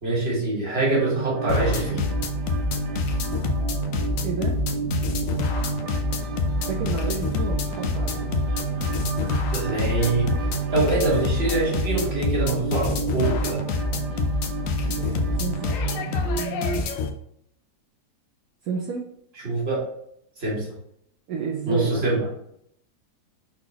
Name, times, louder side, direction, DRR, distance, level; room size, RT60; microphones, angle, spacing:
voice 1, 0.0-2.1 9.5-10.3 10.7-13.6 19.4-19.9 20.4-20.7 21.7-22.2, right 2 dB, 40° right, -5 dB, 1.8 m, -24 dB
sound 1, 0.8-16.8, right 6 dB, 90° right, 1.2 m, -31 dB
sound 2, 1.5-17.1, left 4 dB, 70° left, 0.8 m, -27 dB
voice 2, 4.2-4.6 6.7-8.3 14.9-16.3 18.6-19.1 21.3-22.3, right 5 dB, 70° right, -1 dB, 1.1 m, -31 dB
4.0 x 4.0 x 2.9 m, 0.73 s
omnidirectional pair, 1.8 m